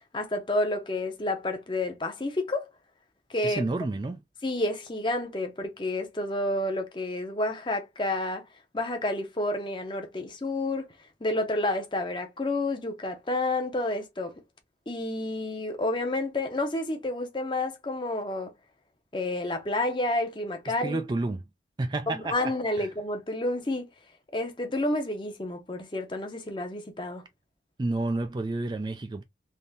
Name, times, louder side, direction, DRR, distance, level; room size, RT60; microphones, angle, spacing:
voice 1, 0.1-2.7 3.3-3.7 4.4-8.5 8.7-10.9 11.2-14.4 14.9-18.5 19.1-21.0 22.1-23.9 24.3-27.2, left 2 dB, 25° left, 0.7 m, -30 dB
voice 2, 3.4-4.2 20.8-21.4 21.8-22.3 22.8-22.9 27.8-29.2, right 2 dB, 25° right, 0.3 m, -30 dB
3.5 x 2.7 x 2.6 m
head